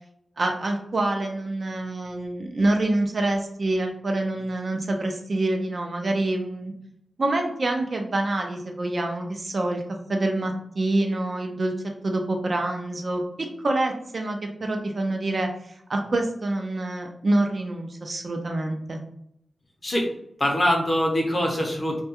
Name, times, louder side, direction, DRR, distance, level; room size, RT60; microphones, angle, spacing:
voice 1, 0.4-6.7 7.2-9.8 10.1-11.7 12.0-15.5 15.9-19.0, right 2 dB, 50° right, 3 dB, 0.4 m, -26 dB
voice 2, 20.4-22.0, equal, 35° left, 0 dB, 0.6 m, -23 dB
2.2 x 2.2 x 2.8 m, 0.74 s
wide cardioid pair, 90°, 0 cm